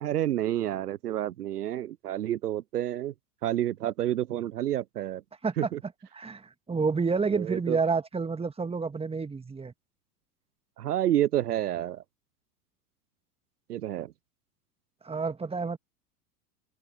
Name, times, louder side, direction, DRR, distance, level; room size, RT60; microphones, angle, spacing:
voice 1, 0.0-3.1 3.4-5.2 5.6-5.8 7.3-7.8 10.8-12.0 13.7-14.1, right 12 dB, 75° right, 0.8 m, -29 dB
voice 2, 5.4-9.7 15.0-15.8, right 4 dB, 10° right, 1.9 m, -29 dB
open air
figure-of-eight pair, 85°, 46 cm